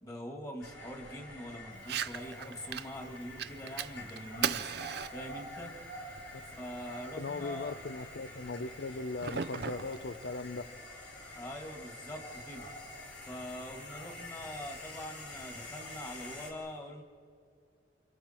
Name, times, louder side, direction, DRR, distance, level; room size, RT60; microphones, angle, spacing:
voice 1, 0.0-4.7 5.1-5.7 6.4-7.7 11.3-12.7 13.2-17.0, left 1 dB, 20° left, 3 dB, 2.1 m, -43 dB
sound 1, 0.6-16.5, left 1 dB, 85° left, 4.6 m, -47 dB
Fire, 1.8-10.8, right 8 dB, 60° right, 0.6 m, -41 dB
voice 2, 7.2-10.7, left 3 dB, 65° left, 15 dB, 0.6 m, -38 dB
29.5 x 27.0 x 4.5 m, 2.3 s
head